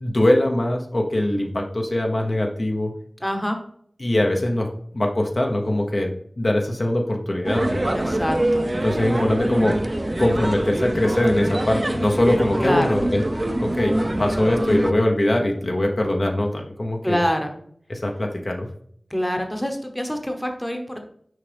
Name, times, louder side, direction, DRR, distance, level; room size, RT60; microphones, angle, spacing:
voice 1, 0.0-2.9 4.0-4.7 4.9-6.1 6.4-7.8 8.8-9.7 10.2-13.2 13.6-17.2 17.9-18.7, left 1 dB, 50° left, 2 dB, 0.8 m, -22 dB
voice 2, 3.2-3.6 7.9-8.6 12.6-12.9 17.0-17.5 19.1-21.0, equal, 10° left, 4 dB, 1.0 m, -25 dB
sound 1, 7.4-14.9, right 1 dB, 35° right, 0.7 m, -24 dB
6.4 x 5.0 x 3.4 m, 0.65 s
wide cardioid pair, 70°, 0 cm